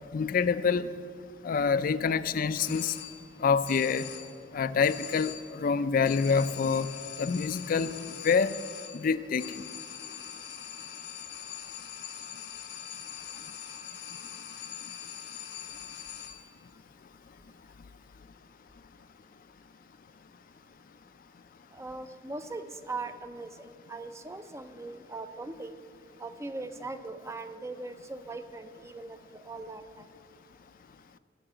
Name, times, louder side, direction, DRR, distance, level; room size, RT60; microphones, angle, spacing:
voice 1, 0.1-0.9 1.4-2.9 3.4-4.1 4.5-6.9 7.2-7.9 8.2-8.5 8.9-9.4, left 5 dB, 50° left, 15 dB, 0.4 m, -26 dB
sound 1, 2.6-3.4 3.6-4.5 4.8-5.7 6.0-16.6, left 9 dB, 75° left, 1.0 m, -43 dB
voice 2, 21.7-25.7 26.2-30.0, right 3 dB, 15° right, 10 dB, 0.4 m, -40 dB
13.5 x 4.7 x 8.9 m, 2.2 s
head